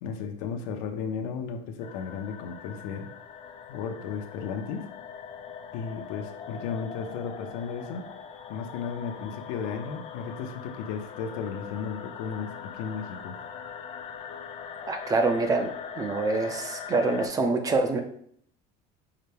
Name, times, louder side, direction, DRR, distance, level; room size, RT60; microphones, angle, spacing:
voice 1, 0.0-3.1 3.7-4.9 5.7-8.1 8.5-13.4, left 6 dB, 80° left, 5 dB, 0.6 m, -34 dB
sound 1, 1.8-17.3, left 7 dB, 35° left, 0.4 m, -41 dB
voice 2, 14.9-15.7 16.0-18.0, right 3 dB, 20° right, 6 dB, 0.5 m, -25 dB
5.6 x 2.2 x 3.3 m, 0.64 s
cardioid pair, 140°, 18 cm